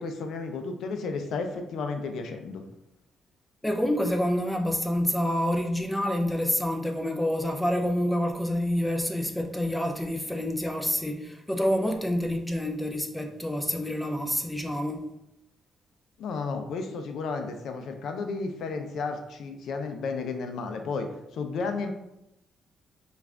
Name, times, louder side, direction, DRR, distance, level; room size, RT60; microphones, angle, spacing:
voice 1, 0.0-2.6 16.2-21.9, left 4 dB, 70° left, 0.4 m, -33 dB
voice 2, 3.6-15.0, left 1 dB, 5° left, 0.5 m, -27 dB
3.3 x 2.4 x 3.5 m
cardioid pair, 90°, 0 cm